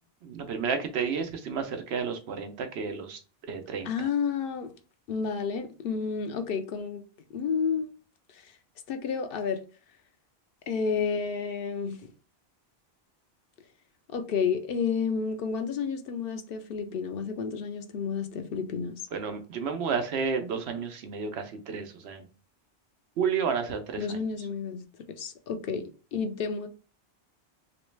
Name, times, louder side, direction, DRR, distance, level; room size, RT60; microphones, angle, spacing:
voice 1, 0.2-3.2 3.5-4.1 19.1-22.2 23.2-24.2, right 6 dB, 85° right, 0.9 m, -31 dB
voice 2, 3.8-4.7 5.1-7.0 7.3-7.9 8.9-9.6 10.7-12.1 14.1-19.0 24.0-25.8 26.1-26.7, left 6 dB, 65° left, 0.7 m, -30 dB
3.1 x 3.0 x 3.2 m
omnidirectional pair, 1.1 m